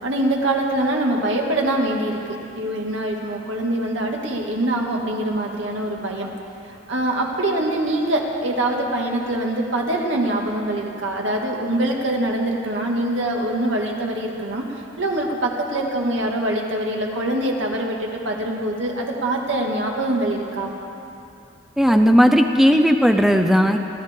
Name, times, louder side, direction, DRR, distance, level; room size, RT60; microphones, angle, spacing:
voice 1, 0.0-6.3 6.9-20.7, right 1 dB, 75° right, 0 dB, 2.1 m, -24 dB
voice 2, 21.8-23.8, equal, ahead, 5 dB, 0.5 m, -15 dB
30.0 x 12.5 x 3.7 m, 2.8 s
head